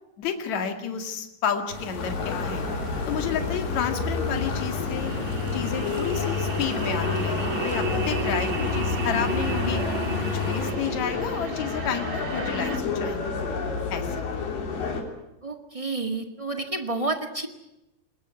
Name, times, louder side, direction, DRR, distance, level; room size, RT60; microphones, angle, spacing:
voice 1, 0.2-2.7 3.1-5.1 5.5-9.8 10.3-13.4 13.9-14.3, left 7 dB, 60° left, 6 dB, 3.3 m, -31 dB
sound 1, 1.7-10.7, left 5 dB, 20° left, 2.8 m, -33 dB
sound 2, 2.0-15.0, left 4 dB, 85° left, 5.0 m, -30 dB
sound 3, 5.0-12.8, right 4 dB, 50° right, 1.5 m, -34 dB
voice 2, 15.4-17.5, right 2 dB, 20° right, 5 dB, 1.0 m, -30 dB
21.0 x 20.5 x 9.5 m, 0.91 s
omnidirectional pair, 3.8 m